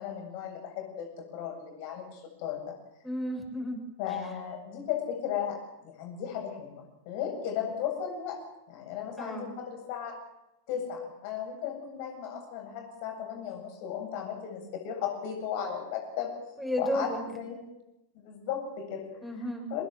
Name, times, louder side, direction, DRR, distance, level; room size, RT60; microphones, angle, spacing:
voice 1, 0.0-2.8 4.0-10.2 10.7-16.3 16.8-17.6 18.1-19.0 19.7-19.8, left 8 dB, 45° left, 4 dB, 7.7 m, -35 dB
voice 2, 3.0-3.8 9.2-9.5 16.6-17.2 19.2-19.6, equal, ahead, 2 dB, 7.4 m, -32 dB
26.5 x 19.5 x 7.6 m, 0.89 s
figure-of-eight pair, 90°, 0 cm